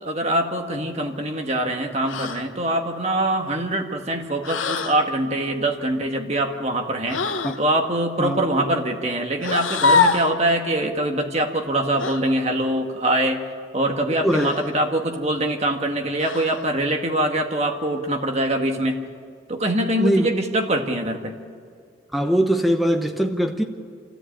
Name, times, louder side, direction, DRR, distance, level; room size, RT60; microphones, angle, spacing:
voice 1, 0.0-7.2 7.6-13.4 13.7-19.0 19.5-21.3, right 1 dB, 35° right, 1.7 m, -23 dB
sound 1, 2.1-2.5 4.4-5.0 7.1-7.6 9.4-10.4 12.0-12.2 14.3-14.8 16.2-16.7, left 4 dB, 90° left, 1.2 m, -23 dB
voice 2, 14.2-14.5 20.0-20.3 22.1-23.6, equal, ahead, 0.9 m, -21 dB
27.0 x 14.0 x 8.9 m
head